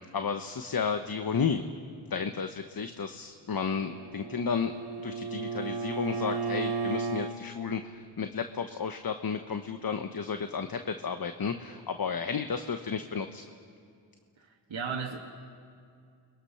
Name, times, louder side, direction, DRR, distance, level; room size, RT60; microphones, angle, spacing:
voice 1, 0.1-1.7 2.1-4.7 5.0-13.4, left 6 dB, 50° left, 7 dB, 1.0 m, -32 dB
Bowed string instrument, 3.6-7.4, right 4 dB, 50° right, 2.2 m, -34 dB
voice 2, 14.4-15.2, right 6 dB, 70° right, -2 dB, 1.8 m, -35 dB
30.0 x 22.0 x 5.8 m, 2.3 s
cardioid pair, 75°, 47 cm